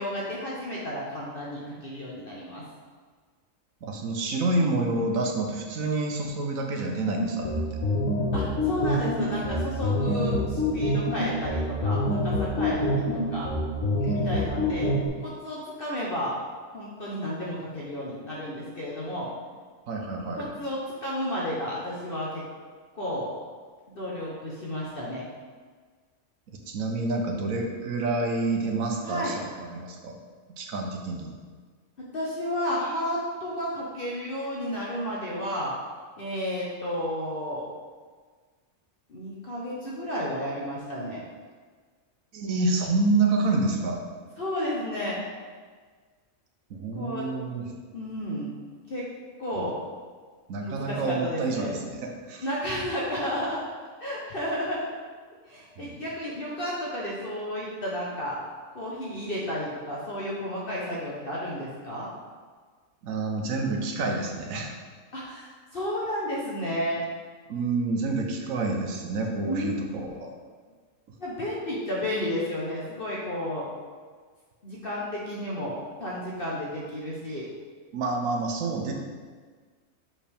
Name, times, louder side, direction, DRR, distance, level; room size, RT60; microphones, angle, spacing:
voice 1, 0.0-2.6 8.3-13.5 14.1-14.9 15.2-16.3 16.7-19.3 20.4-22.4 22.9-23.3 23.9-25.3 29.0-29.4 32.1-35.7 36.2-37.7 39.1-41.2 44.4-45.2 46.9-47.3 47.9-48.5 48.9-49.0 49.4-49.8 50.6-51.7 52.4-53.6 54.0-54.9 55.5-58.4 58.7-62.1 65.1-67.0 69.4-69.7 71.2-73.7 74.6-77.5, equal, 45° left, -5 dB, 1.0 m, -32 dB
voice 2, 3.8-7.5 14.0-14.2 19.9-20.5 26.7-29.3 29.7-30.1 30.5-31.3 42.3-44.0 46.7-47.7 49.5-49.7 50.5-52.5 55.8-56.0 63.0-64.7 67.5-70.3 77.9-78.9, right 3 dB, 80° right, 2 dB, 1.2 m, -28 dB
sound 1, 7.1-15.1, left 1 dB, 75° left, 1.3 m, -26 dB
5.9 x 4.9 x 3.4 m, 1.5 s
omnidirectional pair, 1.4 m